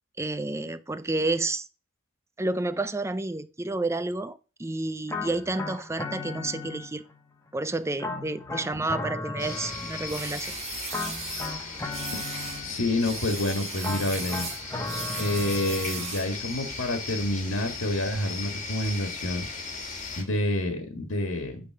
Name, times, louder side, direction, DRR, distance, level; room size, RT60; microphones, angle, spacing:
voice 1, 0.2-1.7 2.4-7.0 7.5-10.5 20.1-20.3, right 2 dB, 15° right, 0.5 m, -30 dB
sound 1, 5.1-7.2 8.0-10.4 10.9-13.0 13.8-16.2, left 3 dB, 15° left, 1.0 m, -36 dB
sound 2, 9.4-20.2, left 4 dB, 35° left, 1.7 m, -37 dB
sound 3, 10.1-11.5 11.9-12.6 13.0-16.4, right 5 dB, 30° right, 1.5 m, -37 dB
voice 2, 12.1-14.5 15.2-19.5 20.2-21.6, left 1 dB, 70° left, 1.6 m, -28 dB
9.4 x 3.9 x 6.8 m
head